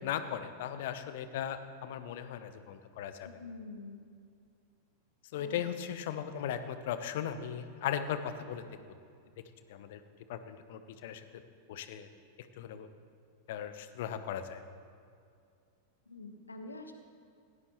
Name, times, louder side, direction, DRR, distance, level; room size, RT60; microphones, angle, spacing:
voice 1, 0.0-3.3 5.3-8.6 9.7-10.0 10.3-11.2 11.7-12.1 12.4-12.9 13.5-14.6, left 9 dB, 55° left, 10 dB, 0.9 m, -37 dB
voice 2, 3.2-4.0 5.4-5.6 16.1-17.0, left 3 dB, 80° left, 6 dB, 1.3 m, -46 dB
17.0 x 17.0 x 3.1 m, 2.4 s
figure-of-eight pair, 90°, 0 cm